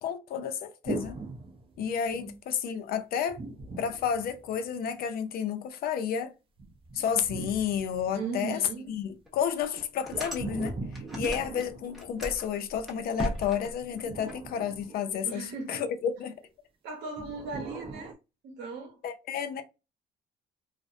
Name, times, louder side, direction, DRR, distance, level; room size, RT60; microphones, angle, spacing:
voice 1, 0.0-1.2 1.8-3.4 3.8-6.3 6.9-8.6 8.9-16.3 19.0-19.6, left 8 dB, 60° left, 0.5 m, -31 dB
sound 1, 0.8-2.3 3.3-4.9 6.6-8.6 10.1-12.7 13.7-15.6 17.2-18.1, right 3 dB, 30° right, 0.5 m, -40 dB
voice 2, 8.1-8.9 15.2-15.8 16.8-18.1 18.4-19.0, right 4 dB, 85° right, 0.9 m, -38 dB
sound 2, 8.7-8.8 9.3-9.4 9.8-11.6 11.9-14.4, left 1 dB, ahead, 0.9 m, -37 dB
2.5 x 2.0 x 2.5 m
cardioid pair, 110°, 17 cm